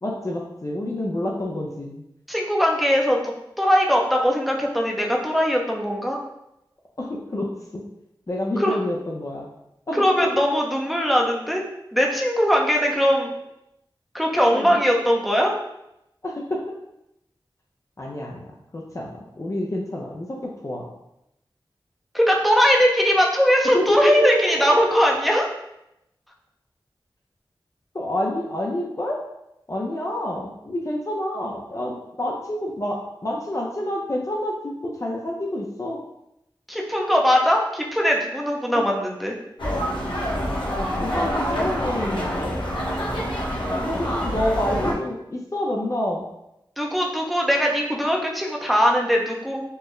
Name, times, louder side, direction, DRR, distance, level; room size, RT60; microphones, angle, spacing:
voice 1, 0.0-2.0 7.0-7.5 7.7-7.8 8.3-9.5 9.9-10.0 14.5-14.8 16.2-16.6 18.0-20.9 23.7-24.0 24.9-25.0 27.9-29.2 29.7-34.5 34.8-36.0 38.7-38.9 40.7-42.4 43.8-46.2, left 1 dB, 40° left, -2 dB, 0.5 m, -28 dB
voice 2, 2.3-6.2 8.6-8.8 9.9-11.6 11.9-13.3 14.1-15.5 22.1-25.4 36.7-39.4 46.8-49.6, equal, ahead, -1 dB, 0.6 m, -20 dB
sound 1, 39.6-44.9, equal, 70° left, 0.8 m, -26 dB
4.4 x 2.1 x 3.1 m, 0.83 s
wide cardioid pair, 60°, 9 cm